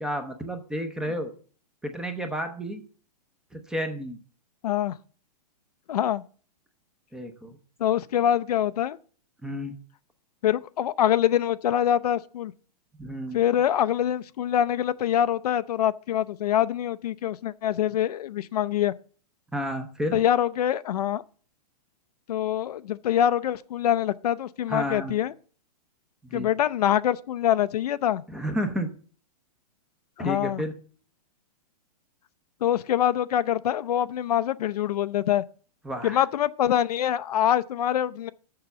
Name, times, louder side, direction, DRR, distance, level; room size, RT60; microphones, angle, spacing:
voice 1, 0.0-1.3 1.8-2.8 3.5-4.2 7.1-7.6 9.4-9.7 13.0-13.4 19.5-20.2 24.7-25.2 26.3-26.5 28.3-28.9 30.2-30.7 35.8-36.2, equal, 5° right, 0.7 m, -31 dB
voice 2, 4.6-5.0 5.9-6.2 7.8-9.0 10.4-12.5 13.3-18.9 20.1-21.2 22.3-25.3 26.3-28.2 30.2-30.6 32.6-35.4 36.0-38.3, left 10 dB, 70° left, 0.6 m, -24 dB
6.8 x 6.6 x 7.0 m
hypercardioid pair, 165°, 21 cm